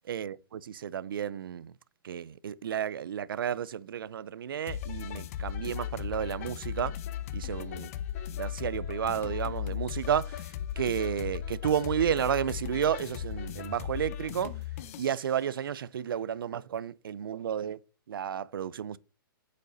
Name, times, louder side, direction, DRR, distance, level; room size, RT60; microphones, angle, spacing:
voice 1, 0.1-1.7 2.0-6.9 7.3-7.9 8.4-14.6 15.0-17.8 18.1-19.0, right 9 dB, 75° right, 0.5 m, -32 dB
sound 1, 4.7-15.2, left 10 dB, 40° left, 0.8 m, -37 dB
8.4 x 5.3 x 3.9 m
hypercardioid pair, 150°, 12 cm